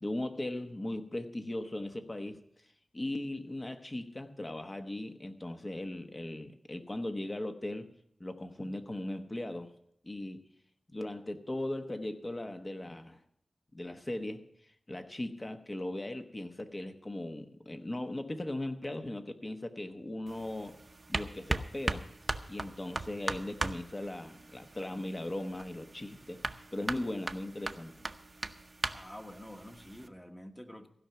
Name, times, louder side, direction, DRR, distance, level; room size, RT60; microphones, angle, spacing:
voice 1, 0.0-2.4 2.9-7.9 8.2-9.7 10.0-10.4 10.9-13.2 13.7-20.8 21.1-22.1 22.5-26.4 26.7-27.9, left 1 dB, 30° left, 7 dB, 1.1 m, -38 dB
sound 1, 20.3-30.1, right 2 dB, 35° right, 0.7 m, -39 dB
voice 2, 28.9-30.9, equal, 15° left, 5 dB, 1.3 m, -48 dB
15.5 x 5.7 x 9.2 m, 0.73 s
wide cardioid pair, 85°, 0 cm